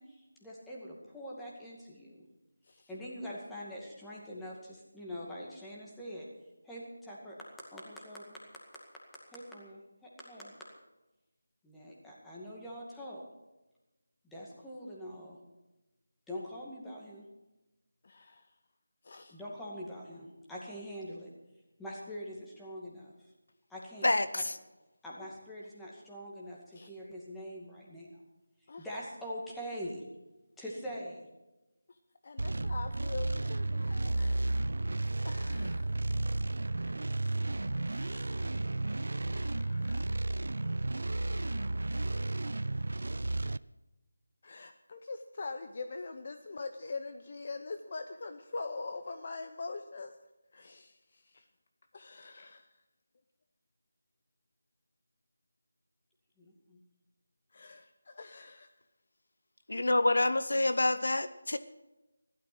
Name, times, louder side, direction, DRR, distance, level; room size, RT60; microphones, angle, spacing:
voice 1, 0.0-2.3 2.9-6.3 6.6-7.4 7.7-8.4 9.3-10.5 11.6-13.2 14.2-15.4 16.3-17.2 19.3-21.3 21.8-23.1 23.7-24.1 24.3-24.4 25.0-28.2 28.8-30.0 30.6-31.3 56.4-56.8, equal, 5° left, -5 dB, 2.2 m, -44 dB
voice 2, 18.0-18.5 19.0-19.4 26.8-26.9 28.7-28.9 32.2-34.4 35.2-35.9 37.9-38.3 39.3-40.2 44.4-50.2 50.5-51.4 51.9-52.7 57.5-58.7 60.6-60.8, left 3 dB, 45° left, 8 dB, 0.8 m, -43 dB
voice 3, 24.0-24.6 59.7-61.6, left 2 dB, 75° left, 13 dB, 0.8 m, -27 dB
sound 1, 32.4-43.6, right 2 dB, 70° right, 0.4 m, -33 dB
15.5 x 12.5 x 6.2 m, 1.0 s
figure-of-eight pair, 170°, 0 cm